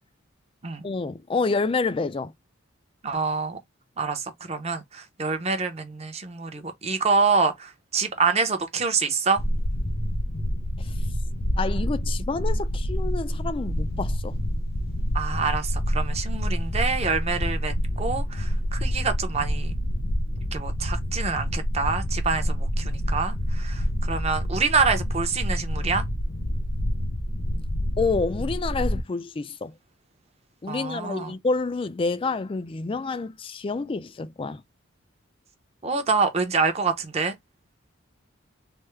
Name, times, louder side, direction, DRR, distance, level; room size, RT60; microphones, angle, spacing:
voice 1, 0.8-2.3 10.8-10.9 11.6-14.4 28.0-29.7 30.6-34.6, left 4 dB, 25° left, 0.3 m, -28 dB
voice 2, 3.0-3.6 4.0-9.4 15.1-19.7 20.5-26.0 30.7-31.3 35.8-37.3, right 4 dB, 30° right, 0.7 m, -26 dB
sound 1, 9.4-29.0, equal, 55° left, 0.8 m, -27 dB
3.4 x 2.1 x 3.1 m
head